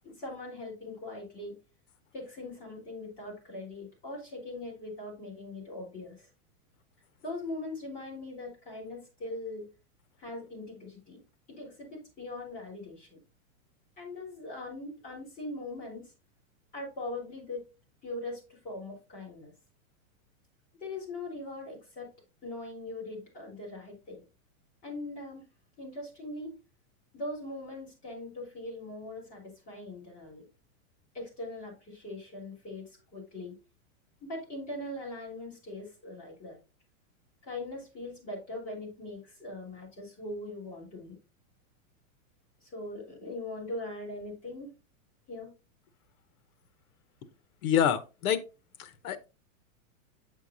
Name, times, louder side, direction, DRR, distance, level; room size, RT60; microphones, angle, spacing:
voice 1, 0.0-1.6 2.1-6.3 7.2-9.7 10.2-11.2 11.5-13.2 14.0-16.1 16.7-17.6 18.0-19.5 20.8-22.1 22.4-24.2 24.8-25.4 25.8-26.6 27.1-30.5 31.1-33.6 34.2-36.6 37.4-41.2 42.6-44.7 45.3-45.5, left 2 dB, 20° left, 3.8 m, -41 dB
voice 2, 47.6-48.4 48.8-49.3, left 9 dB, 80° left, 1.1 m, -27 dB
8.4 x 6.7 x 2.7 m
supercardioid pair, 175°, 42 cm